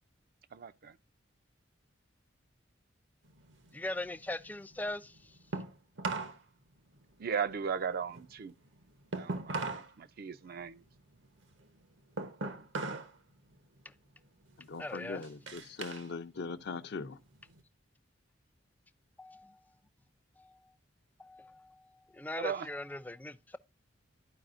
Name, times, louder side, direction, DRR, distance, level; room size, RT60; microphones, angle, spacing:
voice 1, 0.5-0.9 7.2-8.5 9.1-10.8 22.4-22.7, right 6 dB, 50° right, 0.5 m, -37 dB
sound 1, 3.3-6.4 6.7-9.9 10.3-13.2 13.5-13.9 14.4-16.1 16.5-17.6, right 3 dB, 70° right, 1.0 m, -41 dB
voice 2, 3.7-5.2 14.8-15.2 19.2-19.6 20.4-20.6 21.2-21.9 22.1-23.6, left 1 dB, 10° left, 0.4 m, -40 dB
voice 3, 14.6-17.2, left 4 dB, 60° left, 0.5 m, -41 dB
12.5 x 4.8 x 2.5 m
head